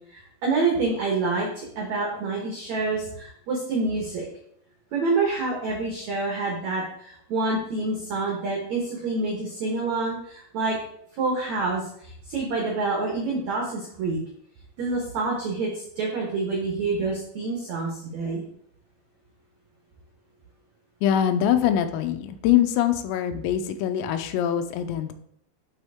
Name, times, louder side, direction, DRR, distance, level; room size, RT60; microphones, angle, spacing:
voice 1, 0.1-4.3 4.9-10.8 11.2-14.2 14.8-18.4, right 3 dB, 75° right, -1 dB, 1.6 m, -27 dB
voice 2, 21.0-25.1, left 10 dB, 85° left, 8 dB, 2.9 m, -23 dB
11.0 x 4.3 x 3.6 m, 0.68 s
omnidirectional pair, 5.1 m